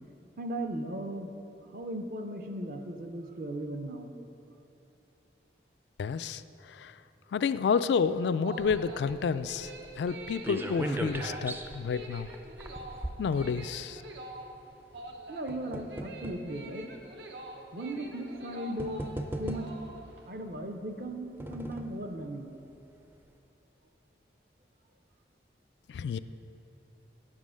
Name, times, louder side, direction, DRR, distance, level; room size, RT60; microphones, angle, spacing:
voice 1, 0.4-1.3 1.6-4.1 15.3-16.9 17.7-19.0 19.4-19.7 20.3-22.6, right 1 dB, 50° right, 5 dB, 0.6 m, -37 dB
voice 2, 6.0-6.4 6.8-6.9 7.3-12.3 13.2-14.0 25.9-26.2, left 6 dB, 75° left, 14 dB, 0.3 m, -30 dB
sound 1, 8.2-20.3, right 2 dB, 80° right, 0.9 m, -46 dB
sound 2, 8.6-14.1 14.9-16.5 17.3-17.4 18.4-18.5 18.8-20.0 20.9-22.0 22.4-22.5 22.8-22.9, right 1 dB, 10° right, 0.4 m, -39 dB
8.9 x 7.4 x 6.2 m, 2.9 s
head